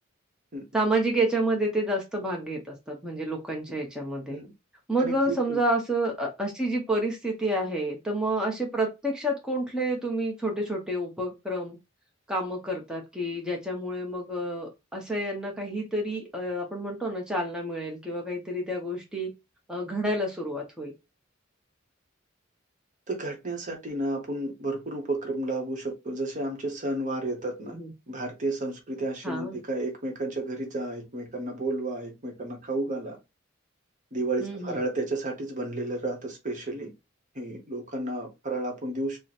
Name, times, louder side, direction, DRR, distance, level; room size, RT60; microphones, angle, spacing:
voice 1, 0.7-4.4 4.9-11.8 12.3-19.3 19.7-20.9 27.7-27.9 29.2-29.6 34.4-34.8, right 1 dB, 5° right, 0.7 m, -29 dB
voice 2, 5.0-5.6 23.1-27.8 28.1-33.2 34.1-36.9 37.3-39.2, right 2 dB, 40° right, 0.9 m, -32 dB
3.1 x 2.1 x 4.0 m
head